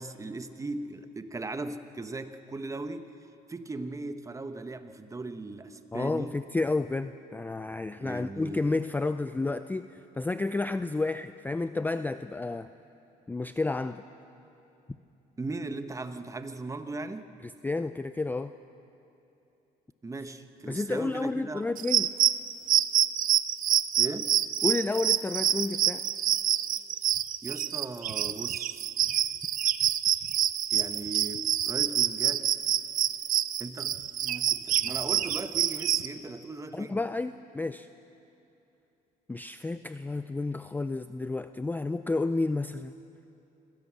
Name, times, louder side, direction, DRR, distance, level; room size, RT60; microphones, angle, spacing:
voice 1, 0.0-3.1 3.5-6.4 8.0-8.7 15.4-17.3 20.0-21.7 24.0-24.3 27.4-28.9 30.7-32.5 33.6-34.0 34.2-37.0, right 3 dB, 20° right, 9 dB, 1.1 m, -38 dB
voice 2, 5.9-12.7 13.3-14.0 17.6-18.5 20.7-22.1 24.6-26.1 36.7-37.9 39.3-42.9, left 3 dB, 10° left, 11 dB, 0.4 m, -31 dB
sound 1, 21.8-36.1, right 11 dB, 55° right, 0.6 m, -27 dB
25.0 x 16.5 x 7.5 m, 2.9 s
cardioid pair, 110°, 17 cm